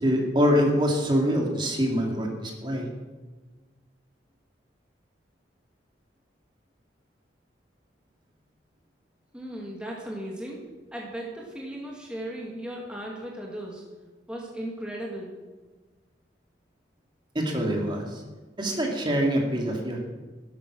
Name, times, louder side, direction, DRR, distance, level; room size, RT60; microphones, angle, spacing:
voice 1, 0.0-2.9 17.3-18.2 18.6-20.0, equal, 25° right, 1 dB, 2.2 m, -25 dB
voice 2, 9.3-13.8 14.3-15.4, right 1 dB, 5° right, -3 dB, 1.9 m, -36 dB
13.5 x 11.0 x 6.2 m, 1.3 s
head